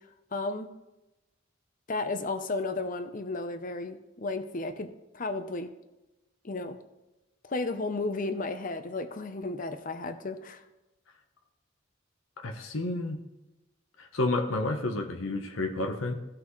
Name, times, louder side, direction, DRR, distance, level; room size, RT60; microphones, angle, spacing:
voice 1, 0.3-0.7 1.9-4.9 5.1-5.7 6.4-6.8 7.4-10.6, left 3 dB, 40° left, 9 dB, 0.7 m, -33 dB
voice 2, 12.4-13.2 14.0-16.1, left 2 dB, 90° left, 5 dB, 1.0 m, -30 dB
16.0 x 5.9 x 3.2 m, 1.0 s
head